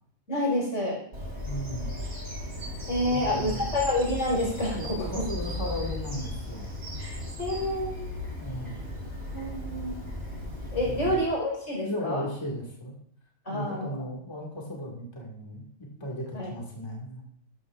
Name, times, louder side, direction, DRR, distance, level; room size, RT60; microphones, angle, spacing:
voice 1, 0.3-1.0 2.9-5.2 7.0-8.3 9.3-10.0 10.7-12.2 13.5-13.9 16.3-16.5, left 1 dB, 85° left, -3 dB, 5.6 m, -28 dB
Bird vocalization bird call bird song, 1.1-11.2, left 1 dB, 60° right, 4.2 m, -36 dB
voice 2, 1.4-2.0 3.0-3.7 4.7-6.7 8.4-8.8 10.8-11.2 11.8-12.9 13.5-17.2, equal, 20° left, -2 dB, 2.4 m, -36 dB
13.5 x 13.0 x 2.6 m, 0.65 s
omnidirectional pair, 1.3 m